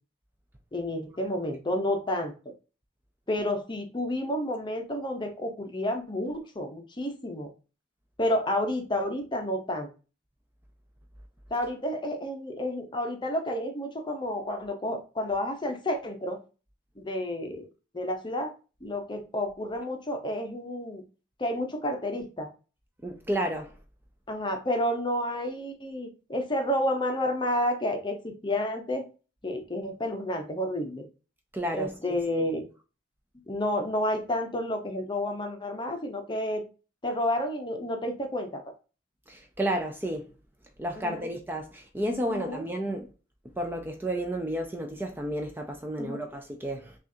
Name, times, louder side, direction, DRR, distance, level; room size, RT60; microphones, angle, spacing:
voice 1, 0.7-2.3 3.3-7.5 8.2-9.9 11.5-16.4 17.0-17.7 17.9-18.5 18.8-21.0 21.4-22.5 24.3-29.0 29.4-31.0 31.7-32.7 33.5-36.6 37.0-38.6 41.0-41.3 42.3-42.7 46.0-46.2, left 1 dB, 25° left, 0.7 m, -30 dB
voice 2, 23.0-23.7 31.5-32.2 39.3-40.3 40.8-43.1 43.6-47.0, right 1 dB, 10° right, 0.4 m, -32 dB
5.9 x 2.5 x 2.7 m
head